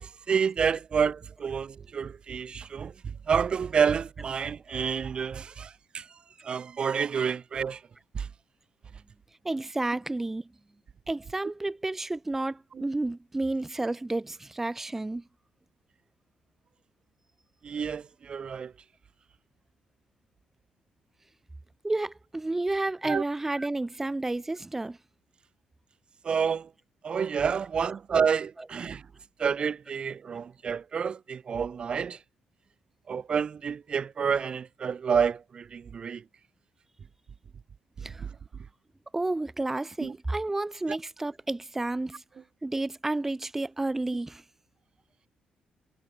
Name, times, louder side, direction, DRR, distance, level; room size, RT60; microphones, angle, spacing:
voice 1, 0.0-2.9 3.3-6.1 6.4-7.8 8.2-8.3 17.6-18.7 23.0-23.2 26.2-26.7 27.0-29.0 29.4-32.2 33.1-36.2 40.0-40.1, right 6 dB, 40° right, 0.5 m, -29 dB
voice 2, 9.4-10.5 11.1-15.2 21.8-25.0 28.6-28.7 38.0-38.3 39.1-42.2 42.6-44.4, right 2 dB, 10° right, 0.9 m, -31 dB
cardioid pair, 125°, 3 cm